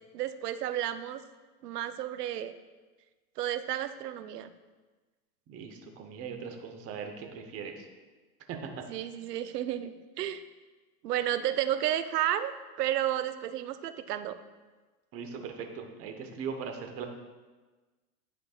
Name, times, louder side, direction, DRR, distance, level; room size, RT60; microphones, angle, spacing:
voice 1, 0.1-1.2 1.6-2.5 3.4-4.5 8.9-10.4 11.0-12.5 12.8-14.4, right 11 dB, 75° right, 11 dB, 0.6 m, -32 dB
voice 2, 5.5-7.9 8.5-8.7 15.1-17.1, right 6 dB, 30° right, 4 dB, 0.9 m, -39 dB
10.5 x 4.6 x 2.4 m, 1.3 s
hypercardioid pair, 115°, 47 cm